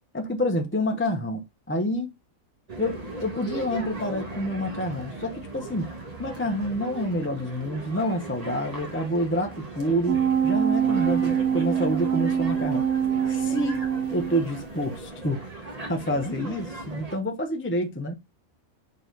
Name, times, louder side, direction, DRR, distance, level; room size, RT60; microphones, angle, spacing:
voice 1, 0.1-2.1 2.8-5.9 6.2-12.8 13.3-13.9 14.1-18.1, equal, 10° left, 0.8 m, -28 dB
sound 1, 2.7-17.2, right 2 dB, 25° right, 1.6 m, -38 dB
sound 2, 10.1-14.6 15.0-15.1, right 8 dB, 85° right, 1.2 m, -24 dB
6.7 x 4.0 x 3.9 m
omnidirectional pair, 1.5 m